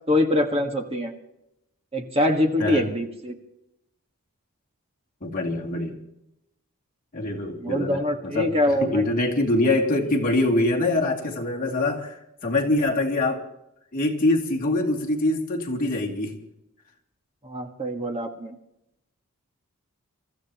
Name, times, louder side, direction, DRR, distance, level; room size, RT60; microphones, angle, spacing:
voice 1, 0.1-1.1 1.9-3.3 7.6-9.0 17.4-18.5, left 1 dB, 25° right, 3 dB, 1.5 m, -24 dB
voice 2, 2.6-2.9 5.2-6.0 7.1-13.4 13.9-16.3, left 2 dB, 40° left, -1 dB, 2.6 m, -24 dB
27.5 x 14.5 x 3.0 m, 0.83 s
head